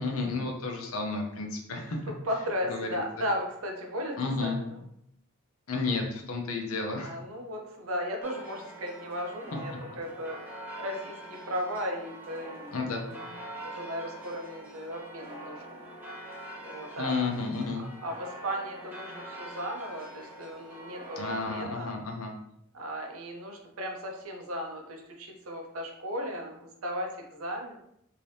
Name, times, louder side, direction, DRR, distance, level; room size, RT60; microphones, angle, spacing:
voice 1, 0.0-2.0 2.7-3.0 4.2-4.6 5.7-7.2 12.7-13.0 17.0-17.8 21.2-22.3, left 3 dB, 80° left, 2 dB, 0.7 m, -32 dB
voice 2, 2.1-4.8 7.0-10.4 10.8-13.2 13.5-15.9 16.6-17.3 18.0-21.9 22.7-27.8, equal, 75° right, 2 dB, 0.7 m, -36 dB
sound 1, 8.2-21.6, right 1 dB, 10° right, 0.7 m, -44 dB
2.8 x 2.7 x 3.2 m, 0.74 s
head